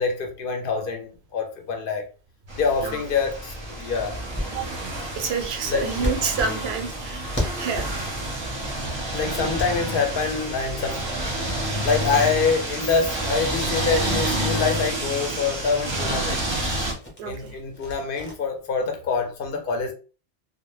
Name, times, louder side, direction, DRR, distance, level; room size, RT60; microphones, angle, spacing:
voice 1, 0.0-2.0 2.6-4.2 5.7-5.9 9.1-11.0 11.8-16.5 17.2-19.9, left 5 dB, 65° left, 0.7 m, -25 dB
sound 1, 2.5-16.9, right 1 dB, 30° right, 0.6 m, -29 dB
sound 2, 3.1-10.1 10.5-18.3, left 1 dB, 15° left, 0.6 m, -37 dB
voice 2, 5.2-7.8 17.2-17.6, right 5 dB, 80° right, 0.8 m, -28 dB
2.1 x 2.0 x 3.0 m
omnidirectional pair, 1.1 m